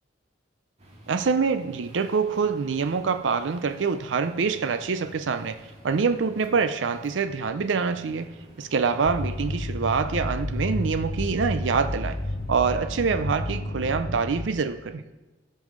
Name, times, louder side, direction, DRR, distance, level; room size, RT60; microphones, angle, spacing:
sound 1, 0.8-12.7, right 1 dB, 35° right, 1.9 m, -50 dB
voice 1, 1.1-12.2 12.5-15.0, right 5 dB, 75° right, 0.5 m, -25 dB
sound 2, 9.0-14.5, left 1 dB, 50° left, 0.7 m, -31 dB
13.5 x 5.5 x 6.3 m
head